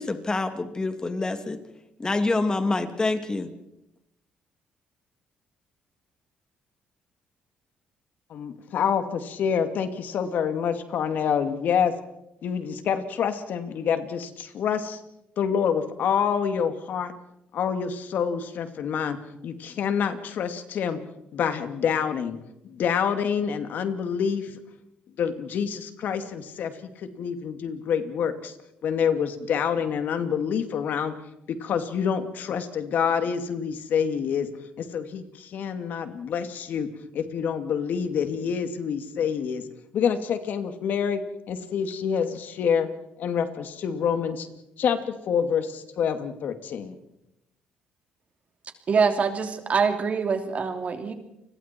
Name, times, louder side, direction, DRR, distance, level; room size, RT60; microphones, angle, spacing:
voice 1, 0.0-1.6 2.0-3.5, left 3 dB, 25° left, 7 dB, 2.7 m, -26 dB
voice 2, 8.3-11.9 12.4-15.0 15.4-17.1 17.5-19.2 19.4-21.0 21.3-22.4 22.6-24.6 25.2-26.7 27.2-28.5 28.8-31.1 31.5-34.5 34.8-36.9 37.1-39.6 39.9-41.2 41.5-42.9 43.2-44.5 44.8-46.9, left 7 dB, 65° left, 8 dB, 2.4 m, -27 dB
voice 3, 48.9-51.1, right 5 dB, 45° right, 6 dB, 3.2 m, -24 dB
29.5 x 21.5 x 4.5 m, 0.84 s
cardioid pair, 85°, 3 cm